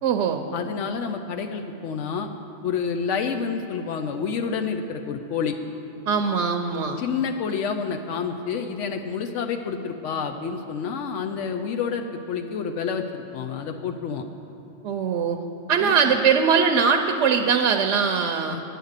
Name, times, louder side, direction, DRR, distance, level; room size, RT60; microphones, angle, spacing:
voice 1, 0.0-0.4 6.1-7.0 14.8-15.4 15.7-18.6, right 6 dB, 75° right, 4 dB, 0.9 m, -21 dB
voice 2, 0.5-2.3 2.6-5.6 7.0-14.2 15.8-16.2 18.5-18.6, left 6 dB, 80° left, 5 dB, 0.9 m, -29 dB
10.0 x 9.2 x 6.5 m, 2.8 s
omnidirectional pair, 1.2 m